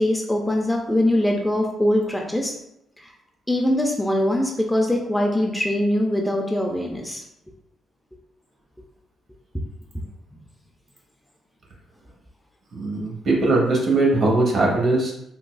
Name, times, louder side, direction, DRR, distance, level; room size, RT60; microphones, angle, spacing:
voice 1, 0.0-2.5 3.0-3.1 3.5-7.2, left 1 dB, 5° left, 0 dB, 0.5 m, -22 dB
voice 2, 12.7-15.1, right 2 dB, 60° right, -2 dB, 1.0 m, -20 dB
3.9 x 2.3 x 2.3 m, 0.79 s
cardioid pair, 90°, 0 cm